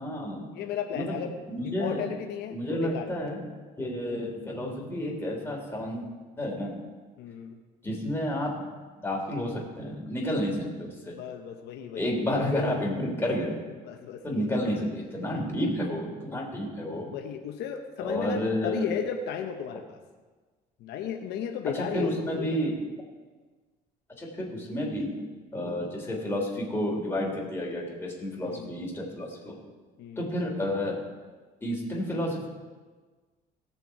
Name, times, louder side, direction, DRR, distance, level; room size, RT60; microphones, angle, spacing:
voice 1, 0.0-0.5 0.9-1.2 1.5-2.0 2.5-3.5 3.8-6.0 6.4-6.8 7.8-8.5 9.0-11.1 11.9-13.6 14.2-17.1 18.0-18.9 21.7-22.7 24.2-25.1 25.5-29.6 30.2-31.0 31.6-32.5, left 1 dB, 15° left, -2 dB, 3.4 m, -30 dB
voice 2, 0.5-1.3 1.6-3.1 7.2-7.6 11.1-12.1 13.8-14.8 17.0-20.0 20.8-22.6 28.4-28.7 30.0-30.3, left 8 dB, 80° left, 4 dB, 0.9 m, -35 dB
17.5 x 6.8 x 4.7 m, 1.4 s
cardioid pair, 110°, 17 cm